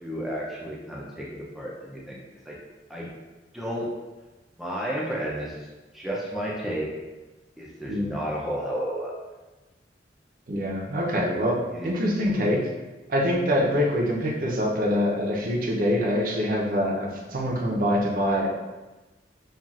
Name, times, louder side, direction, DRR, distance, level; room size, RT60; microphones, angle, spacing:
voice 1, 0.0-2.2 2.5-2.6 2.9-3.1 3.5-3.9 4.6-5.7 5.9-6.9 7.6-9.1 11.7-11.9, equal, ahead, -5 dB, 0.5 m, -32 dB
voice 2, 10.5-11.6 11.8-12.7 13.1-18.5, equal, 55° right, -2 dB, 0.7 m, -24 dB
5.6 x 2.4 x 2.4 m, 1.1 s
head